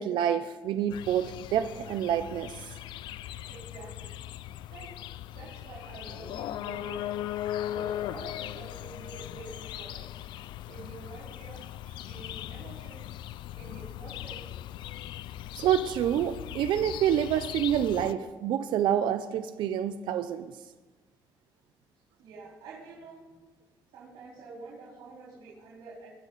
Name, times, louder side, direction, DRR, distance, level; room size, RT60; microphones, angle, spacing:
voice 1, 0.0-2.7 15.5-20.5, right 10 dB, 65° right, 10 dB, 0.5 m, -28 dB
sound 1, 0.9-18.1, left 12 dB, 70° left, 0.4 m, -39 dB
voice 2, 3.5-4.1 4.7-5.0 5.3-7.1 7.7-10.2 10.7-11.6 11.9-13.0 13.5-14.6 22.2-23.4 23.9-26.1, right 3 dB, 90° right, -7 dB, 4.1 m, -47 dB
21.5 x 7.3 x 4.0 m, 1.3 s
cardioid pair, 155°, 8 cm